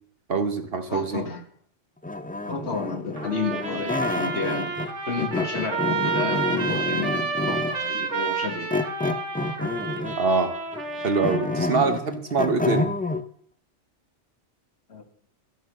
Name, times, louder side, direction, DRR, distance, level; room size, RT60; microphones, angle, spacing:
voice 1, 0.3-1.2 10.2-10.5 11.0-12.9, right 4 dB, 55° right, 1.3 m, -24 dB
voice 2, 0.9-1.4 2.4-4.8 5.1-8.7 14.9-15.0, left 4 dB, 65° left, 1.7 m, -31 dB
sound 1, 2.0-4.9 5.2-7.9 8.7-10.3 10.7-13.2, left 2 dB, 15° left, 0.3 m, -28 dB
Trumpet, 3.2-11.8, right 4 dB, 80° right, 1.7 m, -30 dB
13.0 x 6.3 x 6.4 m
omnidirectional pair, 1.2 m